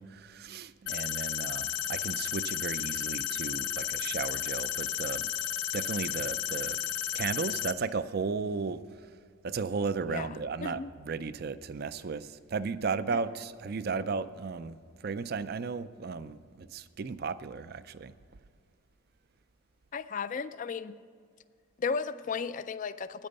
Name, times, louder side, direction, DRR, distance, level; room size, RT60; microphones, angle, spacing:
voice 1, 0.0-5.3 5.7-6.8 7.1-8.8 9.4-14.7 15.0-18.1, right 5 dB, 45° right, 14 dB, 0.4 m, -35 dB
sound 1, 0.9-7.7, left 10 dB, 55° left, 0.7 m, -33 dB
voice 2, 10.1-10.9 19.9-21.0 21.8-23.3, left 5 dB, 35° left, 13 dB, 0.3 m, -35 dB
9.8 x 8.9 x 6.5 m, 2.1 s
head